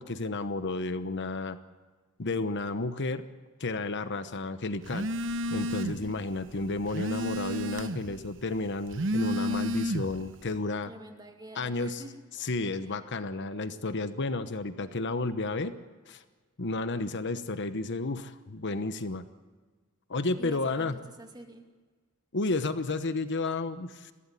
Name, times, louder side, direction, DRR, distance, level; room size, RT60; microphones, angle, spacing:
voice 1, 0.0-1.6 2.2-3.2 3.6-5.1 5.5-10.9 11.5-12.0 12.4-15.7 16.1-16.2 16.6-19.2 20.1-20.9 22.3-24.1, left 3 dB, 55° left, 11 dB, 1.1 m, -32 dB
Telephone, 4.9-6.1 6.5-8.2 8.8-10.3, equal, 60° right, 1.1 m, -31 dB
voice 2, 10.9-12.3 12.8-13.0 20.4-21.7, right 1 dB, 20° right, 4 dB, 2.5 m, -47 dB
22.5 x 16.5 x 9.9 m, 1.4 s
head